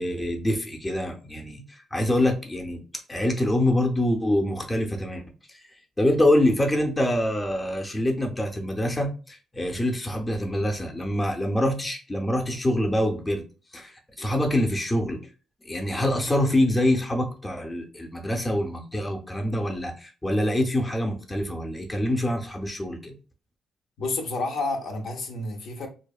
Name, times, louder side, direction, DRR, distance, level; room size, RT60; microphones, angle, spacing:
voice 1, 0.0-2.8 3.1-13.4 13.7-15.2 15.6-23.1, left 1 dB, 15° left, 0.5 m, -25 dB
voice 2, 24.0-25.9, left 2 dB, 70° left, 0.5 m, -30 dB
2.6 x 2.1 x 2.3 m
cardioid pair, 90°, 0 cm